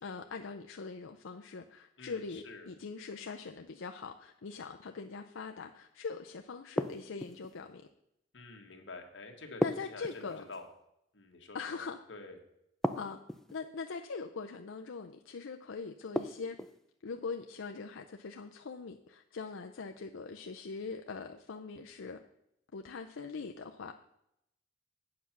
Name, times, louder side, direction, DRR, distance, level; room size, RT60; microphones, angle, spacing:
voice 1, 0.0-7.9 9.6-10.4 11.5-12.0 13.0-13.2 13.5-16.6 17.0-22.2 22.7-23.9, left 4 dB, 90° left, 5 dB, 0.5 m, -42 dB
voice 2, 2.0-2.7 8.3-9.6 9.9-10.6 11.1-11.8 12.1-12.3, left 3 dB, 70° left, 3 dB, 1.6 m, -48 dB
sound 1, 6.8-7.5 9.6-10.6 12.8-13.6 16.1-16.8, equal, ahead, 0.4 m, -34 dB
8.6 x 6.9 x 5.9 m, 0.80 s
head